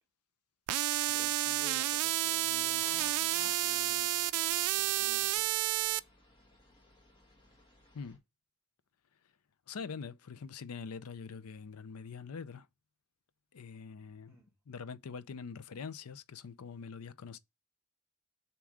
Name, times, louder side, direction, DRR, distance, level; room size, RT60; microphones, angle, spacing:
sound 1, 0.7-6.0, right 15 dB, 90° right, 0.3 m, -31 dB
voice 1, 1.0-4.2 4.8-5.6 14.3-14.5, right 1 dB, 10° right, 1.4 m, -56 dB
sound 2, 2.3-8.2, left 2 dB, 20° left, 1.4 m, -55 dB
voice 2, 9.7-12.7 13.5-14.4 14.7-17.4, left 5 dB, 85° left, 0.5 m, -44 dB
7.0 x 3.0 x 4.8 m
head